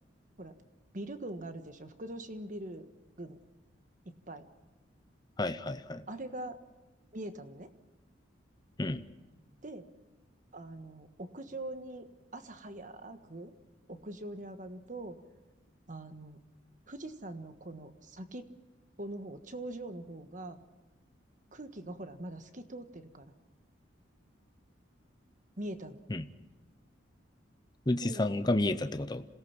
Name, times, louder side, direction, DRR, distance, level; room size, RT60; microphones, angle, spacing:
voice 1, 0.9-2.9 3.2-3.4 4.3-4.4 6.1-6.6 7.1-7.7 9.6-9.9 10.5-12.1 12.3-13.5 13.9-15.2 15.9-16.4 16.9-18.5 19.0-20.6 21.5-23.3 25.6-26.0 28.0-28.3, right 1 dB, 40° right, 8 dB, 1.5 m, -42 dB
voice 2, 5.4-6.0 8.8-9.0 26.1-26.3 27.9-29.3, left 2 dB, 20° left, 10 dB, 0.7 m, -30 dB
27.0 x 18.0 x 6.0 m, 1.1 s
head